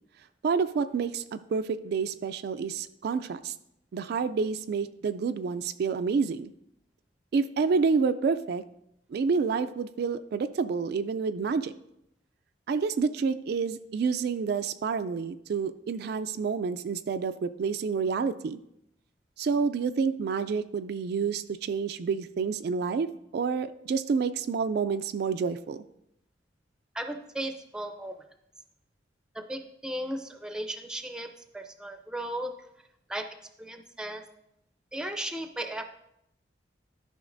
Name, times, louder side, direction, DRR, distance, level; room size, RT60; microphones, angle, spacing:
voice 1, 0.4-3.5 3.9-6.5 7.3-8.6 9.1-11.7 12.7-18.6 19.4-25.8, right 5 dB, 60° right, 10 dB, 0.3 m, -28 dB
voice 2, 26.9-28.2 29.3-32.5 33.1-33.3 33.6-34.2 34.9-35.9, right 1 dB, 5° right, 6 dB, 0.5 m, -36 dB
12.5 x 5.5 x 2.6 m, 0.79 s
head